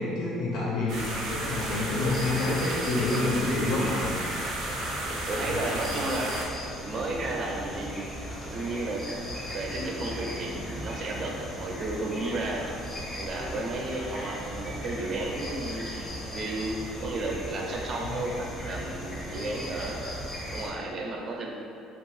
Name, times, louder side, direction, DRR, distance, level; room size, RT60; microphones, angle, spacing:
voice 1, 0.0-4.1 5.5-5.8 18.0-18.1, left 2 dB, 70° left, -4 dB, 0.5 m, -28 dB
sound 1, 0.9-20.7, equal, 10° left, 0.6 m, -38 dB
sound 2, 0.9-6.4, right 1 dB, 85° right, 0.6 m, -33 dB
voice 2, 5.0-6.4 6.8-8.1 8.5-9.0 9.5-12.7 13.1-15.9 16.3-20.0 20.5-21.6, right 2 dB, 40° right, 0 dB, 0.4 m, -33 dB
2.6 x 2.3 x 3.1 m, 2.5 s
cardioid pair, 145°, 0 cm